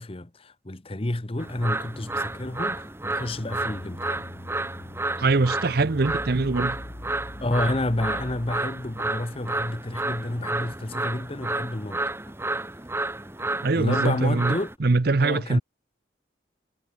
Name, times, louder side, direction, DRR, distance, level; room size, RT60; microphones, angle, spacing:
voice 1, 0.0-4.2 7.4-12.0 13.7-14.7 15.2-15.6, left 1 dB, 30° left, 1.0 m, -30 dB
sound 1, 1.4-14.7, right 2 dB, 15° right, 1.6 m, -31 dB
sound 2, 3.4-8.9, left 1 dB, 50° left, 1.6 m, -41 dB
voice 2, 5.2-6.8 13.6-14.5 14.8-15.6, right 3 dB, 55° right, 0.7 m, -22 dB
head